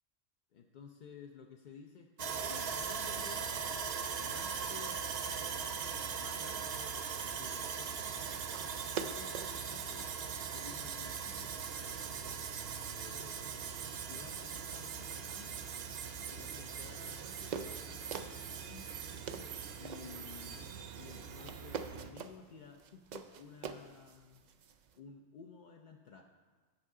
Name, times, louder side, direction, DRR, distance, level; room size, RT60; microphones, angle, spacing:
voice 1, 0.5-3.9 4.2-5.0 6.1-8.2 8.9-10.1 10.5-13.4 14.0-15.7 16.2-18.9 19.8-20.7 20.9-24.4 25.0-26.2, left 6 dB, 55° left, 2 dB, 0.5 m, -54 dB
Sawing, 2.2-22.1, right 6 dB, 60° right, 0.8 m, -40 dB
sound 1, 8.0-25.0, right 6 dB, 75° right, 0.4 m, -49 dB
16.0 x 5.4 x 3.7 m, 1.5 s
omnidirectional pair, 1.3 m